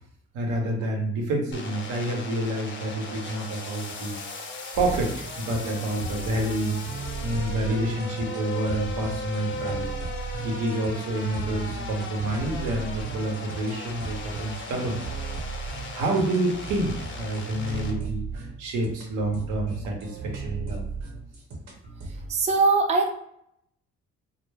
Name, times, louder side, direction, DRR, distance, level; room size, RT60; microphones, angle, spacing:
voice 1, 0.3-4.4 4.8-6.8 7.2-9.9 10.4-15.2 15.9-20.8, right 1 dB, 85° right, 0 dB, 0.8 m, -28 dB
sound 1, 1.5-17.9, left 3 dB, 40° left, 0.6 m, -38 dB
sound 2, 4.7-22.3, right 4 dB, 60° right, 0.9 m, -36 dB
voice 2, 22.3-23.2, right 3 dB, 25° right, 2 dB, 0.4 m, -21 dB
2.2 x 2.1 x 3.2 m, 0.72 s
cardioid pair, 90°, 30 cm